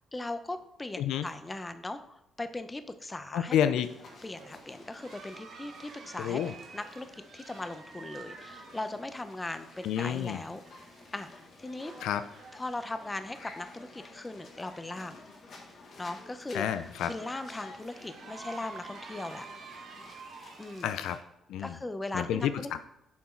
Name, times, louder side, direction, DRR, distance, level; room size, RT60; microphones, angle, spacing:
voice 1, 0.1-3.6 4.2-6.4 6.7-7.1 7.3-10.6 11.1-11.9 12.5-15.2 16.0-16.7 17.1-19.5 20.6-20.9 21.6-22.7, left 2 dB, 20° left, 10 dB, 0.6 m, -39 dB
voice 2, 1.0-1.3 3.3-3.9 6.2-6.5 9.8-10.4 12.0-12.2 16.5-17.1 20.8-21.2 21.5-21.8 22.1-22.8, left 9 dB, 85° left, 11 dB, 0.4 m, -29 dB
sound 1, 3.4-21.2, right 5 dB, 65° right, 0.9 m, -52 dB
sound 2, 3.8-21.2, left 3 dB, 55° left, 1.6 m, -52 dB
7.0 x 4.5 x 4.4 m, 0.84 s
cardioid pair, 90°, 0 cm